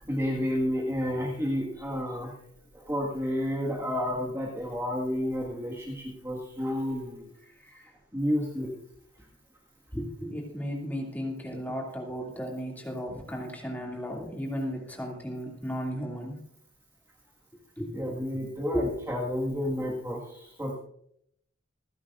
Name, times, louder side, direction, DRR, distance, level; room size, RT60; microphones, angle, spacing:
voice 1, 0.0-2.3 2.7-7.3 8.1-8.7 17.9-20.8, equal, 15° right, -2 dB, 1.6 m, -30 dB
voice 2, 9.9-16.4 17.8-17.9 18.3-18.4 18.7-18.8, equal, 10° left, -1 dB, 2.4 m, -34 dB
27.0 x 10.5 x 2.5 m, 0.70 s
head